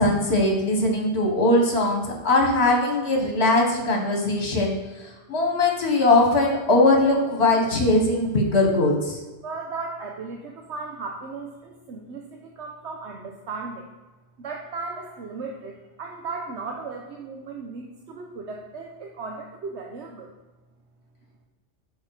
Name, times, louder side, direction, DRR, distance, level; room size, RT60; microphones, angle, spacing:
voice 1, 0.0-4.7 5.3-9.2, left 2 dB, 65° left, 1 dB, 1.7 m, -20 dB
voice 2, 9.4-13.9 14.4-20.3, right 4 dB, 75° right, 1 dB, 1.0 m, -36 dB
7.6 x 5.1 x 4.8 m, 1.2 s
omnidirectional pair, 1.2 m